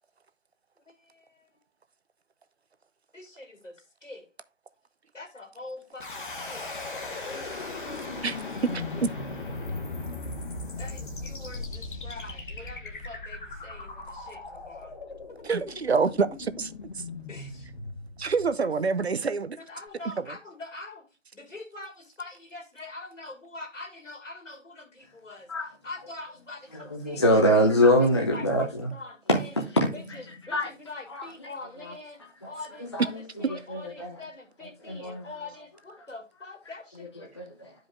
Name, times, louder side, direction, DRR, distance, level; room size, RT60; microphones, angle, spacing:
voice 1, 1.0-1.5 3.1-3.7 4.0-4.3 5.1-6.7 7.2-7.7 10.8-14.9 17.3-17.7 18.6-18.7 19.6-21.1 21.3-25.5 25.8-27.9 28.3-29.5 29.9-37.3, left 2 dB, 80° left, 2.7 m, -44 dB
sound 1, 6.0-18.9, left 3 dB, 40° left, 1.3 m, -38 dB
voice 2, 8.7-9.1 15.4-16.7 17.0-17.1 18.2-19.6, right 5 dB, 60° right, 0.7 m, -26 dB
voice 3, 26.7-28.9 29.3-30.7 31.1-31.3 31.8-31.9 32.4-32.5 32.8-34.2 34.6-35.3 37.0-37.7, equal, 25° left, 0.6 m, -25 dB
12.0 x 5.1 x 2.5 m
figure-of-eight pair, 155°, 37 cm